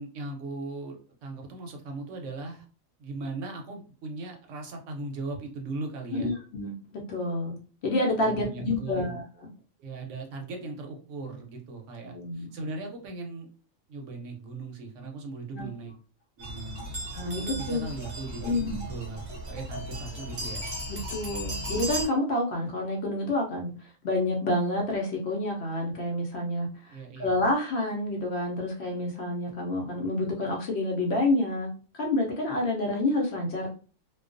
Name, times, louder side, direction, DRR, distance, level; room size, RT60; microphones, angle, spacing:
voice 1, 0.0-2.7 3.0-6.3 8.2-9.2 9.8-13.5 13.9-15.9 16.4-16.9 17.2-20.6 26.9-27.3, right 3 dB, 70° right, 3 dB, 0.9 m, -38 dB
voice 2, 6.1-6.7 7.1-7.5 7.8-9.2 12.0-12.5 15.5-15.7 17.1-17.4 17.7-17.8 18.4-18.8 21.1-33.8, left 1 dB, 60° left, 0 dB, 0.8 m, -28 dB
sound 1, 16.4-22.1, right 1 dB, 40° right, 0.8 m, -36 dB
2.3 x 2.2 x 2.4 m, 0.38 s
omnidirectional pair, 1.4 m